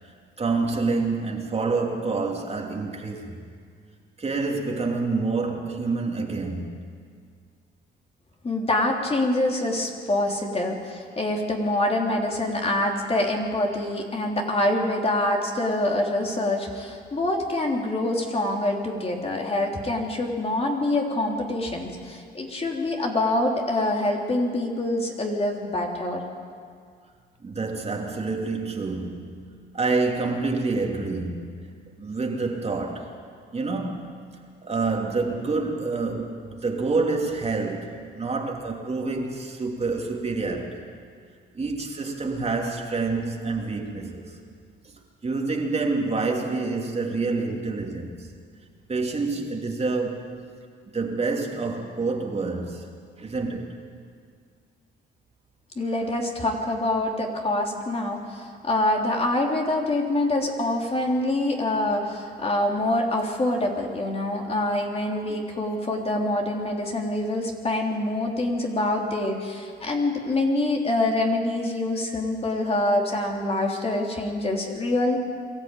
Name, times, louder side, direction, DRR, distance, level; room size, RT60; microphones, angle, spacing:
voice 1, 0.4-3.4 4.2-6.7 27.4-33.2 33.5-34.3 34.6-40.8 41.5-44.4 45.2-48.3 48.9-50.4 50.9-53.7 65.3-65.4, right 3 dB, 30° right, 2.8 m, -28 dB
voice 2, 8.4-26.2 55.7-75.2, left 1 dB, 30° left, 3.2 m, -25 dB
23.0 x 13.5 x 9.1 m
cardioid pair, 90°, 20 cm